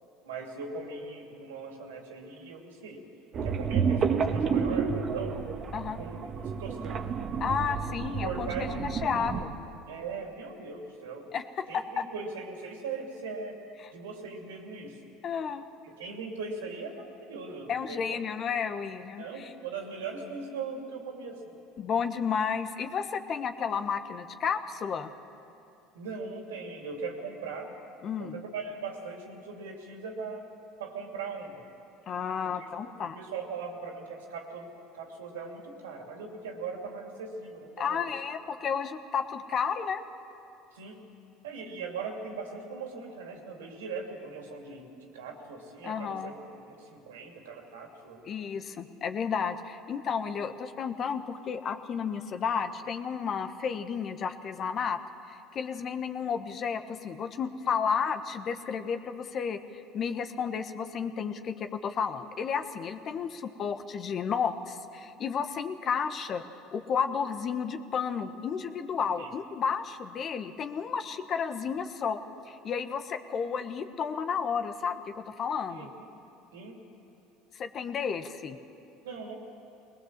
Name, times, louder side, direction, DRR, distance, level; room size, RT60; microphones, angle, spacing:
voice 1, 0.2-3.0 3.4-5.3 6.0-7.0 8.2-9.3 9.9-11.3 11.7-13.6 13.9-15.0 15.8-18.2 19.2-21.6 25.9-27.7 28.2-30.5 30.8-31.6 32.4-38.1 40.7-41.0 41.4-44.9 45.1-48.2 69.2-69.3 75.7-76.1 76.5-76.8 79.0-79.4, right 4 dB, 80° right, 2 dB, 2.7 m, -40 dB
sound 1, 3.3-9.4, right 6 dB, 45° right, 1.4 m, -30 dB
voice 2, 7.4-9.5 11.3-12.0 13.8-13.9 15.2-15.6 17.7-19.5 21.8-25.1 28.0-28.4 32.1-33.2 37.8-40.0 45.8-46.3 48.2-55.0 55.3-66.4 66.7-72.2 72.5-75.9 77.5-78.6, left 6 dB, 45° left, 9 dB, 1.2 m, -32 dB
20.5 x 20.0 x 7.5 m, 2.7 s
hypercardioid pair, 75°, 0 cm